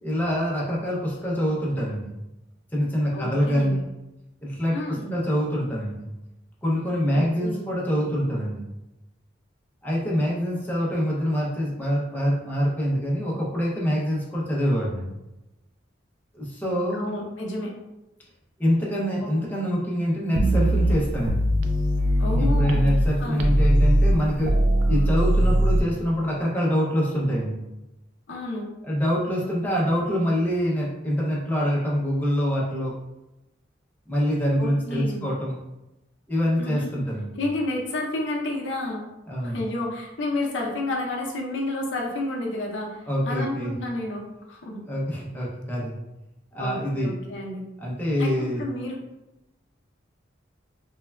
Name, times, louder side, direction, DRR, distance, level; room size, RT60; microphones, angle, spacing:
voice 1, 0.0-2.1 2.7-3.8 4.4-6.1 6.6-8.6 9.8-15.2 16.3-17.0 18.6-21.4 22.4-24.6 24.8-27.6 28.8-32.9 34.1-35.6 36.3-37.4 39.3-39.6 43.1-43.7 44.9-46.0 46.5-47.2 47.8-48.6, equal, 10° left, -5 dB, 0.5 m, -25 dB
voice 2, 3.1-3.8 4.7-5.2 7.1-7.7 16.9-17.7 19.2-19.3 22.2-22.9 23.2-23.5 28.3-28.7 34.6-35.3 36.6-36.9 37.3-39.0 39.4-44.8 46.6-47.6 48.2-49.0, left 2 dB, 75° left, -1 dB, 0.5 m, -31 dB
sound 1, 20.4-23.1 23.4-25.8, right 1 dB, 80° right, 0.3 m, -20 dB
3.2 x 2.1 x 2.2 m, 0.98 s
head